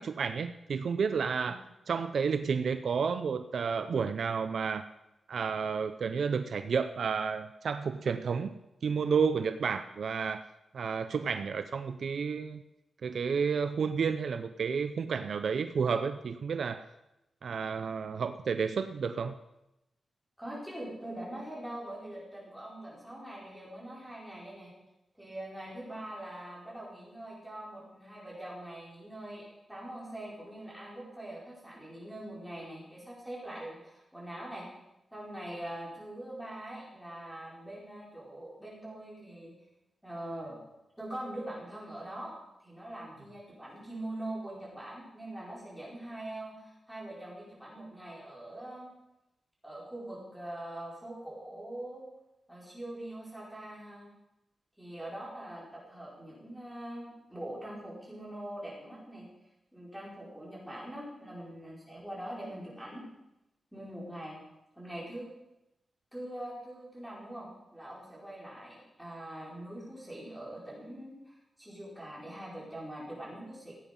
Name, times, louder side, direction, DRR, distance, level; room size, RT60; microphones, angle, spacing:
voice 1, 0.0-1.6 1.9-4.8 5.3-8.5 8.8-10.4 10.7-12.6 13.0-16.8 17.4-19.4, right 6 dB, 65° right, 10 dB, 0.6 m, -31 dB
voice 2, 20.4-24.7 25.2-34.7 35.1-39.5 40.0-40.6 41.0-48.9 49.6-52.1 52.5-54.1 54.8-59.3 59.7-63.1 63.7-64.4 64.8-65.3 66.1-73.7, right 1 dB, ahead, -6 dB, 5.2 m, -43 dB
16.0 x 9.1 x 5.4 m, 0.90 s
wide cardioid pair, 140°, 0 cm